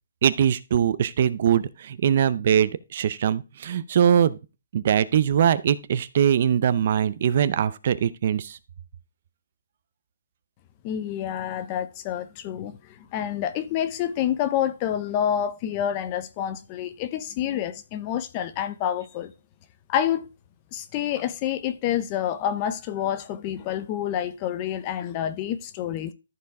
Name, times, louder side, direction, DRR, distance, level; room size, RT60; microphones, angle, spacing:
voice 1, 0.2-4.4 4.7-8.6, right 9 dB, 30° right, 0.5 m, -22 dB
voice 2, 10.8-19.3 19.9-20.3 20.7-26.1, left 10 dB, 15° left, 0.5 m, -28 dB
14.0 x 4.7 x 4.8 m
hypercardioid pair, 180°, 0 cm